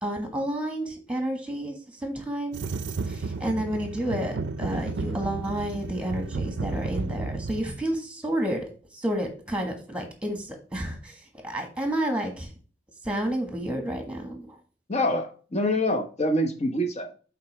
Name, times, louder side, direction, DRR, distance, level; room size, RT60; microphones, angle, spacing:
voice 1, 0.0-2.6 3.0-8.7 8.9-12.5 13.0-14.6, right 1 dB, 5° right, 4 dB, 1.5 m, -30 dB
sound 1, 2.5-7.6, right 3 dB, 80° right, 0.4 m, -32 dB
voice 2, 14.9-17.1, left 1 dB, 40° left, 5 dB, 1.0 m, -25 dB
8.0 x 4.1 x 3.2 m, 0.39 s
head